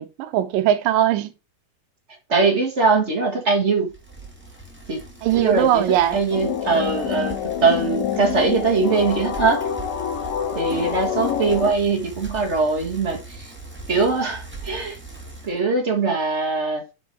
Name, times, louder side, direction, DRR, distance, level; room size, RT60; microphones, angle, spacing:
voice 1, 0.0-1.3 5.2-6.2, right 12 dB, 80° right, 2.4 m, -20 dB
voice 2, 2.3-3.9 4.9-5.0 5.3-9.6 10.5-13.5 13.9-15.0 15.4-16.8, right 4 dB, 40° right, 0.9 m, -21 dB
Bicycle, 3.9-15.6, right 3 dB, 10° right, 0.5 m, -40 dB
sound 1, 6.3-11.7, left 8 dB, 75° left, 2.9 m, -27 dB
7.3 x 5.4 x 4.5 m
omnidirectional pair, 4.0 m